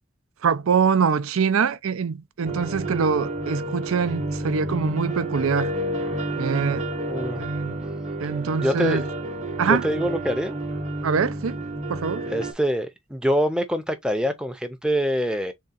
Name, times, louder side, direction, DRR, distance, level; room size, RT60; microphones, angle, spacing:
voice 1, 0.4-5.7 6.4-6.8 7.4-7.8 8.2-9.0 9.6-9.9 11.0-11.6 11.9-12.3, right 6 dB, 85° right, 0.5 m, -24 dB
sound 1, 2.4-12.5, right 2 dB, 35° right, 0.9 m, -30 dB
voice 2, 7.1-7.4 8.6-9.0 9.7-10.6 12.3-15.5, equal, 5° right, 0.5 m, -25 dB
3.6 x 3.6 x 4.1 m
head